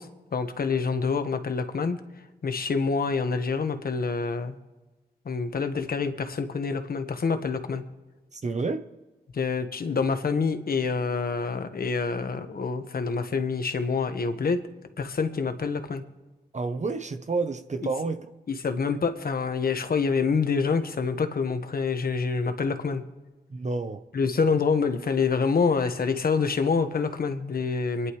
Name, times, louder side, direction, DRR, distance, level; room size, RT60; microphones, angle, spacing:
voice 1, 0.0-2.0 2.4-4.6 5.2-7.8 9.3-14.6 15.0-16.0 18.6-23.0 24.1-28.1, left 5 dB, 55° left, 1.4 m, -26 dB
voice 2, 8.3-8.9 16.5-18.3 23.5-24.0, right 3 dB, 40° right, 0.9 m, -29 dB
24.5 x 11.0 x 3.2 m
cardioid pair, 50°, 18 cm